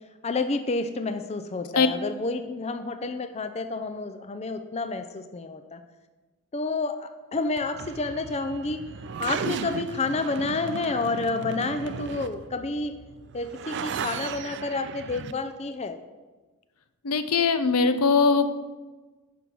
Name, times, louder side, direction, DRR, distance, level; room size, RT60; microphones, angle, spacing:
voice 1, 0.2-5.8 6.5-8.8 9.2-12.9 13.3-16.0, left 3 dB, 30° left, 9 dB, 0.5 m, -29 dB
sound 1, 7.6-15.3, right 6 dB, 55° right, 0.4 m, -36 dB
voice 2, 17.0-18.5, left 4 dB, 80° left, 10 dB, 0.8 m, -21 dB
10.5 x 5.4 x 6.1 m, 1.2 s
head